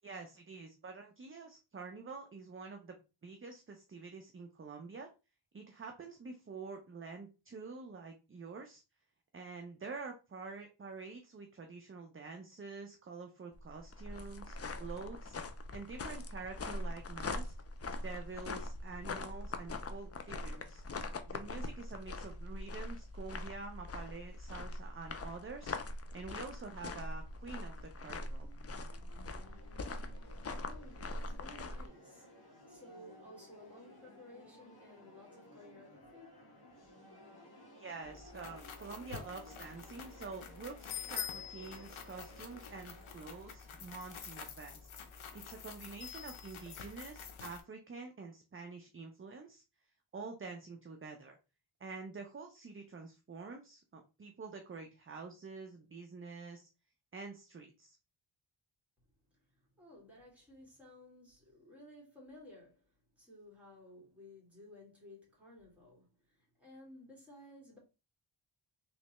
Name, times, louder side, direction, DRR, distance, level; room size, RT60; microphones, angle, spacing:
voice 1, 0.0-5.1 5.5-8.8 9.3-15.4 15.7-17.5 18.0-20.8 21.3-28.5 37.8-49.6 50.1-51.4 51.8-56.7 57.1-58.0, right 4 dB, 25° right, 0.5 m, -47 dB
sound 1, 13.5-31.9, left 2 dB, 35° left, 0.4 m, -42 dB
sound 2, 27.3-45.0, equal, 50° left, 1.6 m, -58 dB
voice 2, 30.2-36.5 59.3-67.8, left 1 dB, 5° right, 2.1 m, -56 dB
sound 3, 38.0-47.6, left 7 dB, 75° left, 0.7 m, -47 dB
3.2 x 3.1 x 2.9 m
wide cardioid pair, 110°, 49 cm